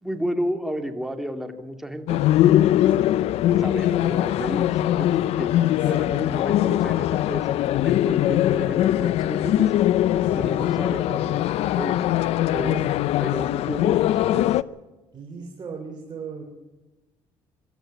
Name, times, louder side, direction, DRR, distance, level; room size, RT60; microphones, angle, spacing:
voice 1, 0.0-2.2 3.6-9.7 10.3-12.0 12.5-12.9 13.2-14.5, equal, 5° right, 6 dB, 2.6 m, -32 dB
sound 1, 2.1-14.6, left 13 dB, 75° left, 0.6 m, -21 dB
voice 2, 5.8-6.5 10.2-11.4 12.8-13.2 13.7-13.8 14.3-14.4 15.1-16.4, right 4 dB, 45° right, 1 dB, 3.9 m, -39 dB
24.0 x 13.5 x 9.0 m, 1.2 s
cardioid pair, 100°, 11 cm